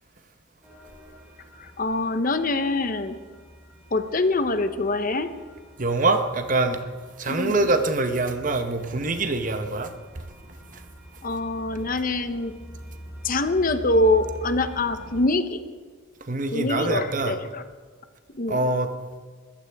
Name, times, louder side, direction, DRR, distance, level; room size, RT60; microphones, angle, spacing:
sound 1, 0.6-15.2, equal, 10° right, 5.1 m, -45 dB
voice 1, 1.5-3.2 3.9-5.3 7.3-7.7 11.2-12.5 13.2-15.6 16.5-17.6 18.3-18.6, left 2 dB, 45° left, 10 dB, 0.8 m, -24 dB
voice 2, 5.8-6.8 7.2-9.9 10.7-10.8 16.2-17.4 18.5-18.9, right 2 dB, 40° right, 8 dB, 0.9 m, -24 dB
21.5 x 14.5 x 3.5 m, 1.5 s
head